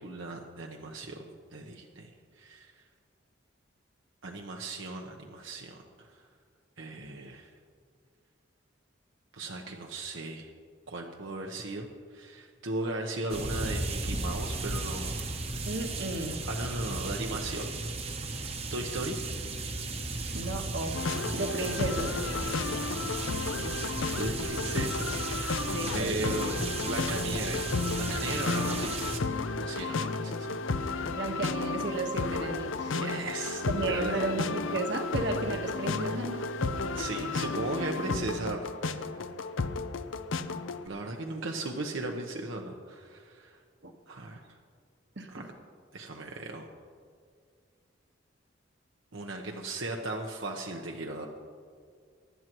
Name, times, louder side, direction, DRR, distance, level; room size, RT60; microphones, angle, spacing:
voice 1, 0.0-2.1 2.4-2.8 4.2-6.2 6.8-7.5 9.3-10.5 10.9-15.2 16.4-17.7 18.4-19.2 24.2-26.5 26.8-30.5 32.9-34.3 36.9-39.2 40.9-43.6 44.1-44.4 45.3-45.5 45.9-46.6 49.1-51.3, right 2 dB, 80° right, 1 dB, 0.9 m, -37 dB
sound 1, 13.3-29.2, right 3 dB, 30° right, 0.9 m, -35 dB
voice 2, 15.7-16.5 20.3-21.0 21.3-22.2 25.7-26.4 30.0-30.3 31.1-32.9 33.7-36.5 43.8-43.9 45.2-45.5, right 2 dB, 65° right, 5 dB, 1.3 m, -34 dB
sound 2, 20.9-40.9, left 3 dB, 85° left, 0.6 m, -33 dB
23.5 x 11.0 x 3.1 m, 2.1 s
head